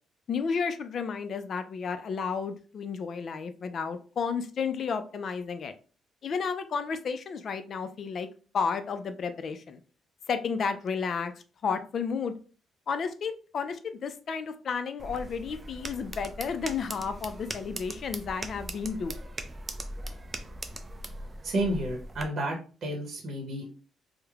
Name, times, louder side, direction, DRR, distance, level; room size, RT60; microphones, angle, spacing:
voice 1, 0.3-5.7 6.2-8.3 8.5-9.8 10.3-11.3 11.6-12.3 12.9-19.2, left 5 dB, 55° left, 9 dB, 0.4 m, -32 dB
sound 1, 15.0-22.2, right 1 dB, 25° right, 0.4 m, -40 dB
voice 2, 21.4-23.7, right 1 dB, 55° right, 0 dB, 0.8 m, -31 dB
3.0 x 2.0 x 2.3 m, 0.37 s
cardioid pair, 90°, 0 cm